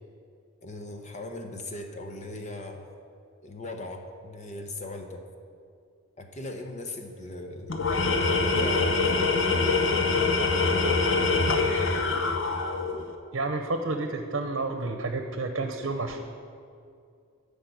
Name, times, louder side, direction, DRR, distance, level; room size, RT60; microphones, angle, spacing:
voice 1, 0.6-2.9 3.4-5.2 6.2-7.8 8.2-9.5, left 2 dB, 35° left, 4 dB, 0.9 m, -39 dB
Tools, 7.7-13.1, left 3 dB, 60° left, 1.0 m, -24 dB
voice 2, 13.3-16.2, right 3 dB, 65° right, 6 dB, 0.8 m, -30 dB
14.0 x 5.3 x 8.1 m, 2.3 s
head